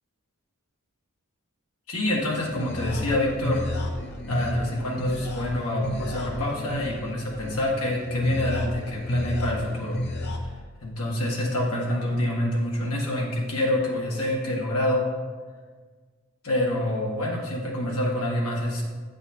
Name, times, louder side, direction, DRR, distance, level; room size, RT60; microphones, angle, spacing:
voice 1, 1.9-3.6 4.3-10.0 10.8-15.0 16.4-18.8, left 1 dB, 75° left, -3 dB, 1.7 m, -27 dB
sound 1, 2.2-10.4, equal, 50° left, 0.8 m, -31 dB
8.6 x 8.1 x 2.9 m, 1.5 s
head